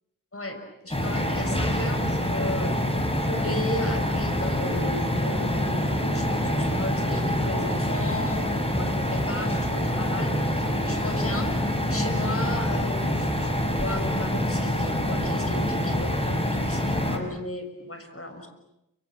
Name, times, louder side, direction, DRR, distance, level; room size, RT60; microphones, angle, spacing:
voice 1, 0.3-2.9 3.1-11.5 11.9-18.5, left 1 dB, 40° left, 6 dB, 6.7 m, -35 dB
sound 1, 0.9-17.2, left 1 dB, 15° left, 6.1 m, -26 dB
29.0 x 26.5 x 7.7 m, 0.88 s
cardioid pair, 40°, 33 cm